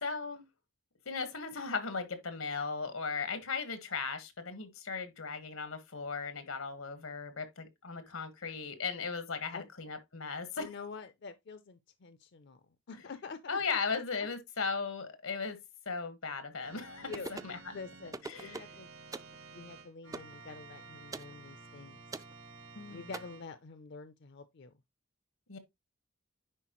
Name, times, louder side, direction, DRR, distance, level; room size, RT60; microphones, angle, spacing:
voice 1, 0.0-0.5 1.0-10.7 13.5-15.6 15.8-17.6 18.3-18.6 22.7-23.1 25.5-25.6, left 5 dB, 90° left, 1.5 m, -37 dB
voice 2, 10.6-12.6 12.9-13.6 13.9-14.3 17.0-17.3 17.7-18.9 19.5-22.0 22.9-24.7, left 4 dB, 55° left, 0.5 m, -47 dB
Organ, 16.6-23.4, right 4 dB, 70° right, 1.3 m, -52 dB
sound 1, 17.1-17.6 18.1-18.8 19.1-19.4 20.1-20.3 21.1-21.3 22.1-22.3 23.1-23.2, right 3 dB, 15° right, 0.3 m, -42 dB
10.0 x 4.4 x 3.0 m
head